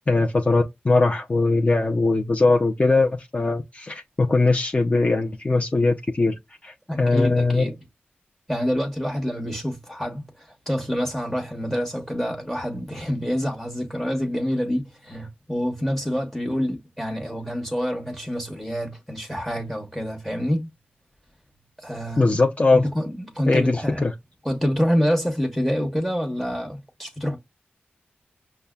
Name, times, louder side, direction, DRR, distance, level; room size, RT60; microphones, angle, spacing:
voice 1, 0.1-6.4 6.6-7.7 22.2-22.8 23.5-24.1, left 3 dB, 35° left, 0.6 m, -20 dB
voice 2, 6.9-7.7 8.5-20.7 21.8-22.4 22.7-24.0 24.4-27.4, equal, 5° left, 1.0 m, -27 dB
5.3 x 2.2 x 2.3 m
cardioid pair, 55°, 4 cm